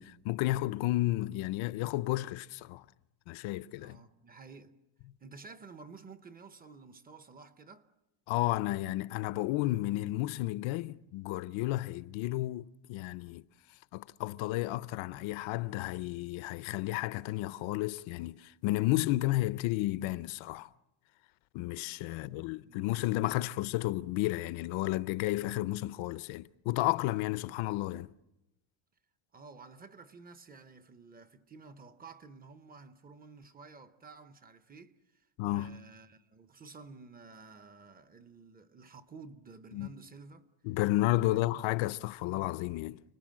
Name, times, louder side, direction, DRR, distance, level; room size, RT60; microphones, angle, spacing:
voice 1, 0.0-2.8 3.3-4.0 8.3-13.4 13.9-20.7 21.5-28.1 35.4-35.8 39.7-39.9 40.6-43.0, left 17 dB, 75° left, 0.8 m, -32 dB
voice 2, 3.8-4.8 5.2-7.9 22.1-23.5 29.3-40.5 41.2-41.6, right 4 dB, 20° right, 0.8 m, -52 dB
29.5 x 20.5 x 7.5 m
cardioid pair, 175°, 48 cm